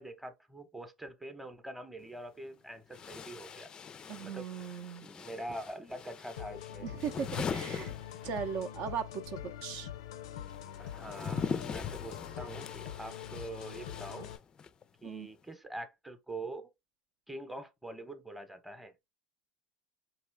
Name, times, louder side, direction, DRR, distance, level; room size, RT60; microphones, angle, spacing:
voice 1, 0.0-3.7 4.2-6.9 10.8-14.3 15.0-16.7 17.3-18.9, right 1 dB, 5° right, 0.9 m, -44 dB
sound 1, 2.0-2.1 2.9-8.7 9.0-14.8, left 6 dB, 30° left, 0.4 m, -41 dB
voice 2, 4.1-5.1 6.8-7.9 8.2-9.9 15.0-15.3, right 7 dB, 60° right, 0.6 m, -38 dB
sound 2, 6.4-14.4, left 10 dB, 90° left, 0.5 m, -44 dB
4.8 x 2.9 x 3.3 m
supercardioid pair, 100°, 3 cm